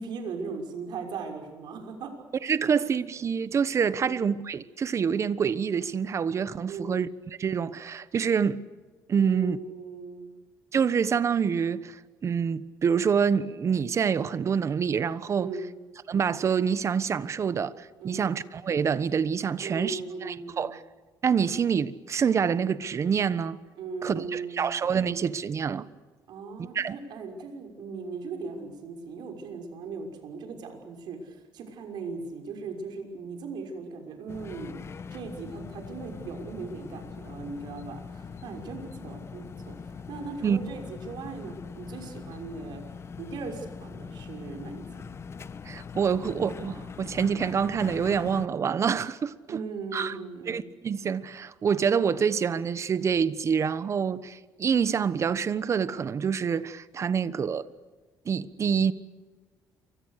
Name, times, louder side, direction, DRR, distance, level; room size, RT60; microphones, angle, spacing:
voice 1, 0.0-2.1 3.9-4.2 6.7-7.0 9.2-10.3 15.4-15.7 18.0-18.3 19.6-20.8 23.8-24.8 26.3-34.8 35.1-42.8 43.2-45.1 49.5-50.6, right 4 dB, 70° right, 6.0 m, -38 dB
voice 2, 2.4-7.1 7.4-8.6 9.1-9.6 10.7-15.5 16.1-20.8 21.2-23.6 24.0-25.9 26.7-27.0 40.4-40.6 45.6-49.6 49.9-50.1 50.5-57.7 58.2-58.9, right 6 dB, 40° right, 1.2 m, -26 dB
sound 1, 34.3-48.5, left 5 dB, 35° left, 1.2 m, -42 dB
28.5 x 24.5 x 6.7 m
cardioid pair, 125°, 8 cm